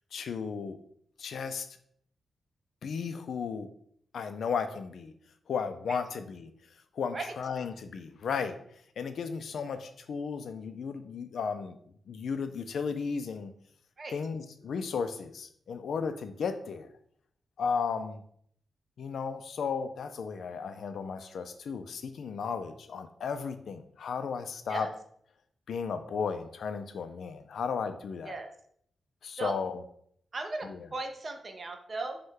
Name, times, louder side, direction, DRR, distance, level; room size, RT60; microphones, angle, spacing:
voice 1, 0.1-0.8 1.2-1.7 2.8-3.7 4.1-5.1 5.5-6.5 6.9-8.6 9.0-11.8 12.1-13.5 14.1-16.9 17.6-18.2 19.0-24.9 25.7-28.4 29.2-29.8 30.6-30.9, left 6 dB, 70° left, 9 dB, 0.4 m, -34 dB
voice 2, 30.3-32.2, right 2 dB, 35° right, 5 dB, 0.5 m, -36 dB
5.3 x 2.2 x 3.7 m, 0.66 s
wide cardioid pair, 180°, 0 cm